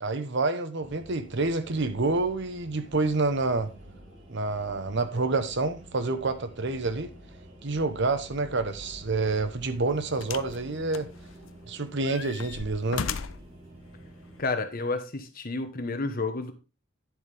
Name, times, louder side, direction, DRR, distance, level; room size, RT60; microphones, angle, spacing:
voice 1, 0.0-3.7 4.3-7.1 7.6-11.1 11.7-13.1, right 3 dB, 60° right, 1.0 m, -28 dB
sound 1, 0.8-14.4, right 1 dB, 45° right, 3.2 m, -49 dB
sound 2, 9.0-9.2 10.2-10.6 10.9-11.6 12.0-13.5 14.4-14.5, left 6 dB, 70° left, 0.6 m, -36 dB
voice 2, 14.4-16.5, left 3 dB, 45° left, 1.2 m, -30 dB
10.5 x 7.3 x 3.5 m
head